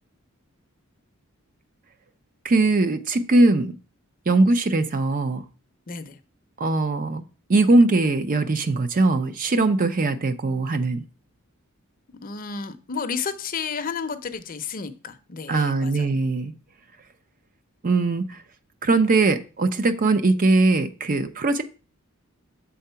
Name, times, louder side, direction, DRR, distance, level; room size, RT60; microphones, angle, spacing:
voice 1, 2.4-3.7 4.3-5.4 6.6-7.2 7.5-11.0 15.5-16.5 17.8-18.4 18.8-21.6, right 2 dB, 40° right, 0.5 m, -20 dB
voice 2, 5.9-6.2 12.2-16.2, left 5 dB, 40° left, 0.6 m, -32 dB
7.0 x 3.7 x 5.6 m
head